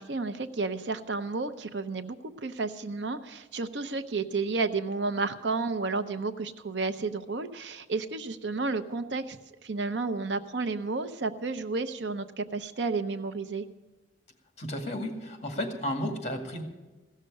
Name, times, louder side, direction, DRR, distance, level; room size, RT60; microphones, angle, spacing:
voice 1, 0.0-9.4 9.6-13.6, right 3 dB, 75° right, 11 dB, 0.7 m, -31 dB
voice 2, 14.6-16.6, left 1 dB, 40° left, 4 dB, 2.1 m, -33 dB
16.0 x 6.6 x 9.7 m, 1.2 s
head